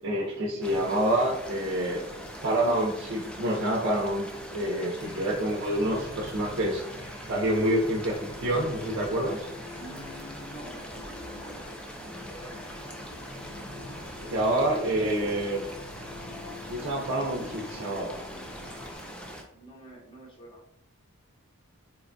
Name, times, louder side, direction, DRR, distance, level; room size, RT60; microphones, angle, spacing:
voice 1, 0.0-2.0 2.4-8.2 8.4-9.5 14.3-15.6 16.7-18.2, right 1 dB, 60° right, -3 dB, 0.5 m, -27 dB
sound 1, 0.6-19.4, equal, 5° left, 0.3 m, -42 dB
sound 2, 5.0-19.0, left 2 dB, 70° left, 0.9 m, -45 dB
voice 2, 9.7-11.6 12.3-12.6 19.5-20.6, equal, 25° left, -3 dB, 0.7 m, -47 dB
4.0 x 2.2 x 2.5 m, 0.77 s
head